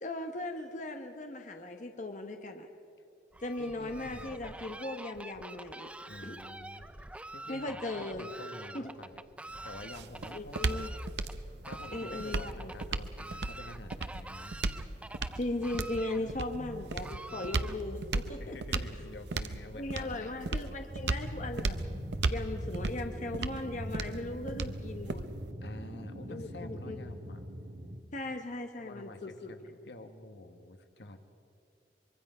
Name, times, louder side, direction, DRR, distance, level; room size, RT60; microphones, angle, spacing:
voice 1, 0.0-2.7 3.4-5.9 6.2-6.4 7.5-8.3 8.7-8.9 10.3-10.9 11.9-12.7 15.4-18.6 19.7-21.8 22.3-25.3 26.3-27.0 28.1-29.5, left 2 dB, 45° left, 5 dB, 1.1 m, -38 dB
Fowl, 3.3-18.1, right 2 dB, 5° right, 0.4 m, -47 dB
voice 2, 3.6-4.4 6.1-6.9 7.3-9.2 9.6-10.8 11.6-14.6 16.2-17.8 18.4-20.8 25.6-27.4 28.8-31.2, left 2 dB, 80° left, 7 dB, 1.5 m, -48 dB
sound 1, 9.5-25.5, right 3 dB, 80° right, 0.8 m, -36 dB
sound 2, 20.9-28.0, equal, 65° right, 1.7 m, -42 dB
24.0 x 23.0 x 5.5 m, 2.5 s
head